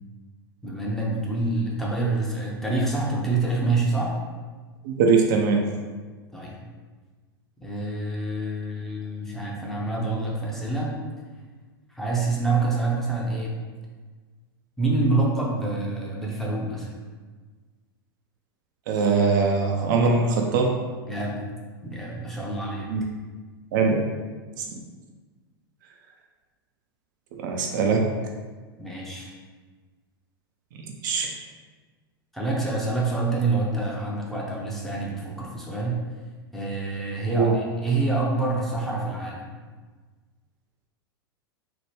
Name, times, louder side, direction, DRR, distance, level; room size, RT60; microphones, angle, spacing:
voice 1, 0.6-4.1 6.3-6.6 7.6-10.9 11.9-13.6 14.8-16.9 21.0-21.5 21.8-22.9 28.8-29.3 32.3-36.0 36.5-39.5, right 3 dB, 5° left, -5 dB, 0.6 m, -27 dB
voice 2, 4.8-5.6 18.9-20.7 22.9-23.0 23.7-24.0 27.4-28.0 31.0-31.3 37.3-37.5, right 4 dB, 55° right, 1 dB, 0.4 m, -21 dB
2.9 x 2.1 x 3.3 m, 1.4 s
figure-of-eight pair, 90°, 13 cm